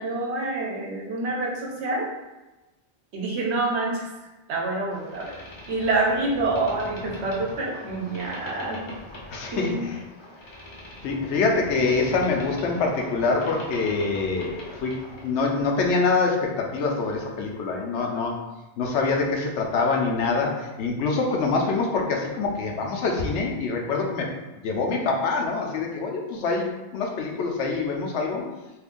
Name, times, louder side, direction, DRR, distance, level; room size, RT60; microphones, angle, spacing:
voice 1, 0.0-2.1 3.1-4.1 4.5-8.8 9.5-9.8, right 2 dB, 85° right, -1 dB, 1.0 m, -27 dB
Boat Water vehicle, 4.9-15.4, left 1 dB, 35° left, 0.5 m, -41 dB
voice 2, 9.3-10.0 11.0-14.9 15.2-18.4 18.8-24.3 24.6-28.4, left 4 dB, 85° left, 1 dB, 0.9 m, -25 dB
2.8 x 2.5 x 3.6 m, 1.1 s
omnidirectional pair, 1.1 m